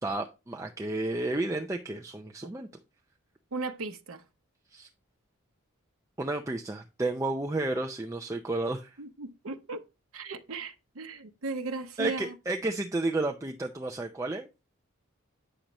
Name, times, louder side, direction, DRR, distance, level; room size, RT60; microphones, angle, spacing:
voice 1, 0.0-2.7 4.7-4.9 6.2-9.0 12.0-14.5, right 2 dB, 15° right, 0.5 m, -32 dB
voice 2, 3.5-4.2 9.0-9.8 10.1-12.3, right 3 dB, 75° right, 0.8 m, -37 dB
8.8 x 6.5 x 3.0 m
head